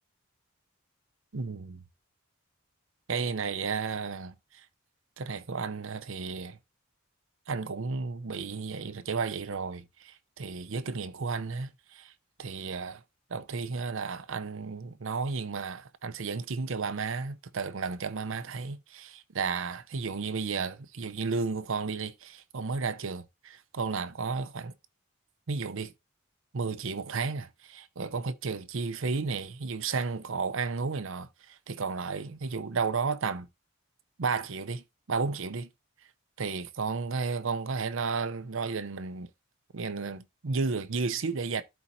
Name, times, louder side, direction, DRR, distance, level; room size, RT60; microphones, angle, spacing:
voice 1, 1.3-1.8 3.1-4.6 5.2-6.6 7.5-12.1 12.4-13.0 13.3-24.7 25.5-25.9 26.5-33.5 34.2-35.7 36.4-39.3 39.7-41.6, right 4 dB, 70° right, 0.7 m, -33 dB
12.5 x 4.3 x 2.7 m
head